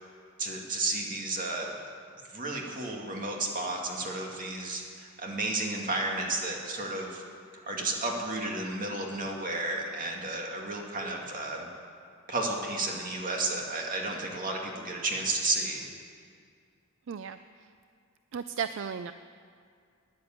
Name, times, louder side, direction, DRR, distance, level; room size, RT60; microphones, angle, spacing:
voice 1, 0.4-1.7 2.3-7.2 7.6-11.7 12.3-15.9, right 2 dB, 40° right, 0 dB, 2.2 m, -32 dB
voice 2, 17.1-17.7 18.3-19.1, right 7 dB, 60° right, 11 dB, 0.4 m, -35 dB
13.0 x 10.5 x 8.9 m, 2.2 s
head